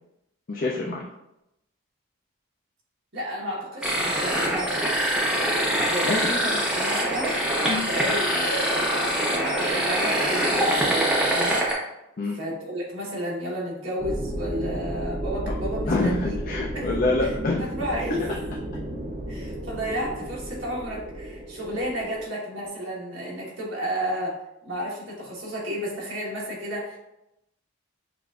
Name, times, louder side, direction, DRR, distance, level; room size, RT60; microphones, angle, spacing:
voice 1, 0.5-1.1 6.0-6.3 7.7-7.8 12.2-12.4 15.4-15.6 15.9-17.7 18.2-18.3, left 2 dB, 40° left, -2 dB, 0.4 m, -26 dB
voice 2, 3.1-4.9 5.9-7.3 7.8-11.6 12.3-16.4 16.7-16.9 17.2-17.3 17.6-18.2 19.3-24.4 24.6-27.0, equal, 60° right, -4 dB, 1.3 m, -32 dB
sound 1, 3.8-11.7, right 1 dB, 5° right, 0.7 m, -24 dB
sound 2, 14.0-22.2, right 1 dB, 45° right, 0.6 m, -33 dB
6.7 x 2.5 x 2.4 m, 0.87 s
head